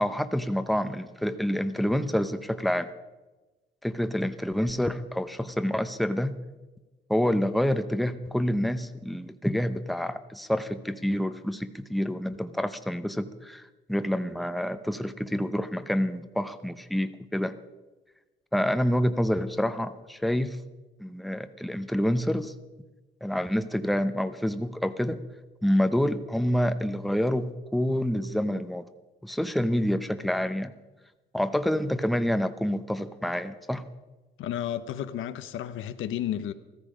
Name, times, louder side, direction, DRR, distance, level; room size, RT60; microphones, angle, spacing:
voice 1, 0.0-2.9 3.8-6.4 7.1-13.6 13.9-17.5 18.5-20.6 21.0-22.5 23.2-25.2 25.6-28.9 29.2-30.7 31.3-33.8, equal, ahead, 0.8 m, -27 dB
voice 2, 34.4-36.5, left 11 dB, 85° left, 0.8 m, -32 dB
15.0 x 14.0 x 5.1 m
cardioid pair, 90°, 20 cm